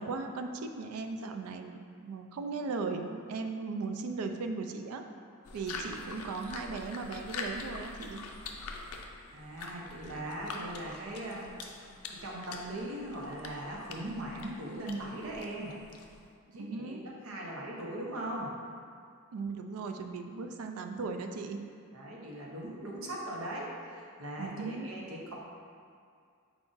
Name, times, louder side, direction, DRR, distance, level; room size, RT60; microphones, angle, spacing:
voice 1, 0.0-5.0 5.5-8.2 16.5-17.0 19.3-21.6 24.4-24.9, right 4 dB, 85° right, 6 dB, 0.3 m, -37 dB
sound 1, 5.4-16.3, left 4 dB, 75° left, 0.4 m, -44 dB
voice 2, 9.3-11.7 12.1-15.7 16.5-18.5 21.9-25.3, right 1 dB, 65° right, -3 dB, 0.7 m, -39 dB
4.7 x 2.5 x 3.8 m, 2.2 s
head